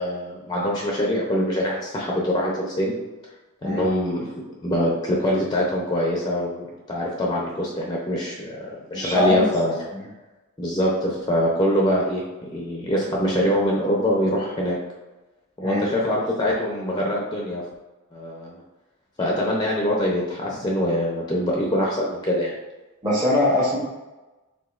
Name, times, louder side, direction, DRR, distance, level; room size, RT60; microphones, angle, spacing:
voice 1, 0.0-2.9 3.6-9.8 10.6-12.2 12.5-14.8 15.6-17.6 18.1-18.6 19.2-22.5, equal, 20° left, -3 dB, 0.6 m, -24 dB
voice 2, 8.9-9.5 9.9-10.0 15.6-15.8 23.0-23.8, left 1 dB, 15° right, -9 dB, 0.9 m, -21 dB
4.9 x 3.6 x 2.4 m, 1.1 s
head